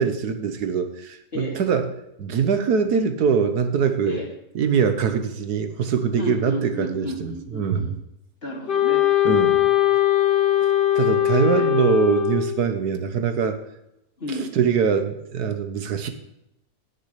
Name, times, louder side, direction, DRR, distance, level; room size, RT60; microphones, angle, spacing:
voice 1, 0.0-1.9 2.2-4.2 4.5-7.9 9.2-9.6 10.9-13.6 14.4-16.1, right 6 dB, 70° right, 8 dB, 1.5 m, -23 dB
voice 2, 6.2-7.9 8.4-9.7 11.1-11.7 14.2-14.6, left 1 dB, 35° left, -1 dB, 2.3 m, -33 dB
Wind instrument woodwind instrument, 8.7-12.7, left 12 dB, 85° left, 2.0 m, -20 dB
17.0 x 6.8 x 3.2 m, 0.84 s
omnidirectional pair, 1.8 m